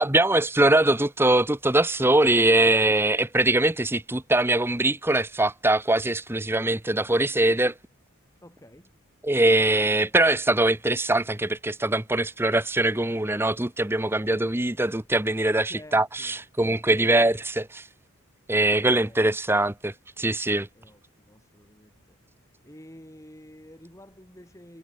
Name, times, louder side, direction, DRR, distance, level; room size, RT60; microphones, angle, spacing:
voice 1, 0.0-7.7 9.2-17.8 18.5-20.7, right 2 dB, 10° right, 0.9 m, -22 dB
voice 2, 8.4-8.9 15.6-16.4 16.9-17.1 18.8-19.2 20.7-24.8, equal, 15° left, 6.5 m, -50 dB
head